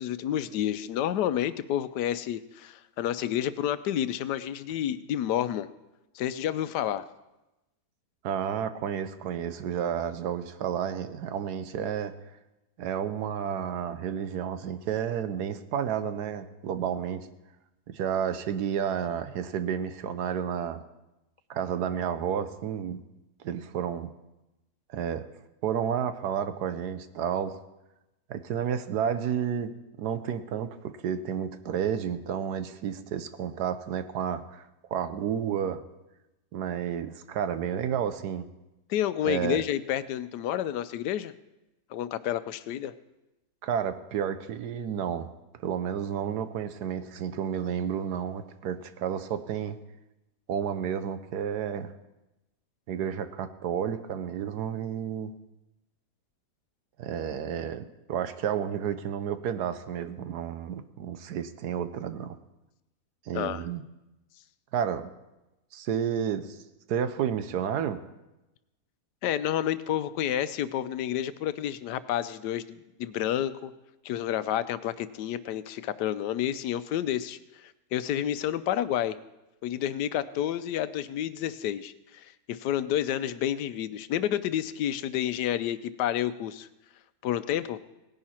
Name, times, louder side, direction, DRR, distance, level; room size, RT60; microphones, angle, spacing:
voice 1, 0.0-5.7 6.1-7.0 38.9-41.3 41.9-42.9 63.3-63.6 69.2-73.7 74.0-79.2 79.6-86.7 87.2-87.8, left 11 dB, 85° left, 14 dB, 1.2 m, -30 dB
voice 2, 8.2-12.1 12.8-17.3 17.9-20.8 21.5-23.0 23.4-24.1 24.9-25.3 25.6-27.6 28.3-34.6 34.9-35.8 36.5-38.4 39.2-39.6 43.6-45.3 45.6-49.8 50.5-51.9 52.9-55.3 57.0-62.4 63.3-63.8 64.7-65.1 65.7-66.6 66.9-68.0, right 8 dB, 80° right, 11 dB, 1.3 m, -31 dB
18.0 x 10.5 x 4.3 m, 0.97 s
omnidirectional pair, 1.7 m